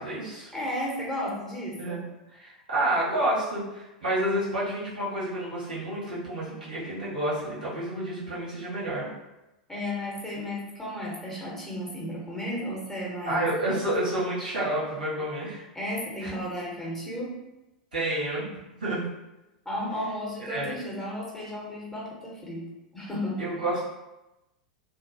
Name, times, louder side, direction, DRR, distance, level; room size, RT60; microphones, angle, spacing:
voice 1, 0.0-0.5 1.8-2.0 2.3-9.1 13.3-15.6 16.2-16.3 17.9-19.0 19.8-19.9 20.5-20.8 23.4-23.8, right 1 dB, 80° right, -8 dB, 1.3 m, -29 dB
voice 2, 0.5-2.0 9.7-13.5 15.7-17.3 19.6-22.6 22.9-23.4, left 1 dB, 5° left, -5 dB, 0.8 m, -33 dB
2.8 x 2.3 x 2.6 m, 0.98 s
figure-of-eight pair, 90°, 4 cm